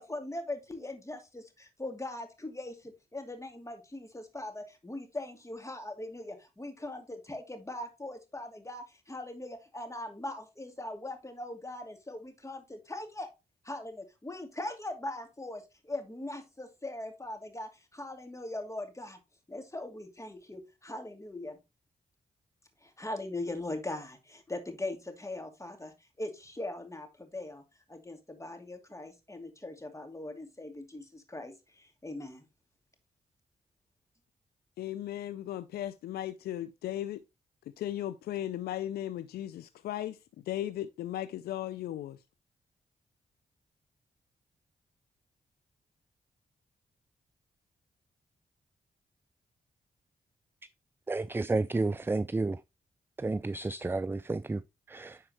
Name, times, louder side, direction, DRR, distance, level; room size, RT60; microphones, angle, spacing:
voice 1, 0.0-13.3 13.6-19.2 19.5-21.6 22.8-27.6 27.9-32.4, left 2 dB, 20° left, 2.5 m, -40 dB
voice 2, 34.8-37.2 37.8-42.2, left 12 dB, 90° left, 0.4 m, -36 dB
voice 3, 51.1-52.6 53.2-55.3, right 3 dB, 15° right, 0.3 m, -31 dB
10.0 x 4.4 x 3.0 m
supercardioid pair, 50°, 16 cm